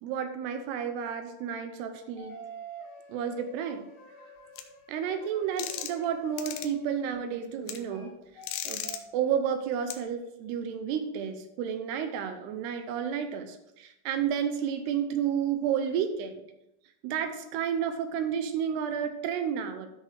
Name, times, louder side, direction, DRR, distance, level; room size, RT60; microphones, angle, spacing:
voice 1, 0.0-2.4 3.1-3.8 4.9-8.1 8.6-16.4 17.0-19.9, right 8 dB, 80° right, 7 dB, 2.5 m, -31 dB
sound 1, 2.2-7.3 7.9-8.5 8.8-9.0, right 3 dB, 55° left, 2.2 m, -48 dB
sound 2, 4.6-4.7 5.6-6.0 6.4-6.7 7.7-7.8 8.4-9.0 9.9-10.0, left 11 dB, 80° left, 2.5 m, -35 dB
13.5 x 6.4 x 3.4 m, 0.84 s
omnidirectional pair, 5.3 m